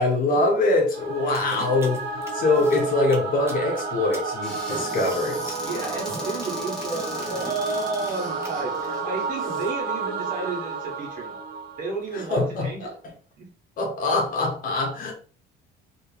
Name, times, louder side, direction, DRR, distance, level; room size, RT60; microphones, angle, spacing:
voice 1, 0.0-5.6 12.1-13.0 13.8-15.1, left 2 dB, 50° left, 1.1 m, -24 dB
Singing / Musical instrument, 0.9-12.2, right 4 dB, 60° right, 0.8 m, -31 dB
sound 1, 1.3-8.5, right 2 dB, 15° right, 0.6 m, -39 dB
Squeak / Cupboard open or close, 4.4-9.7, left 1 dB, ahead, 1.3 m, -40 dB
voice 2, 5.6-11.4 11.8-12.9 13.4-13.5, right 3 dB, 45° right, 1.5 m, -32 dB
3.4 x 2.9 x 2.9 m
cardioid pair, 170°, 19 cm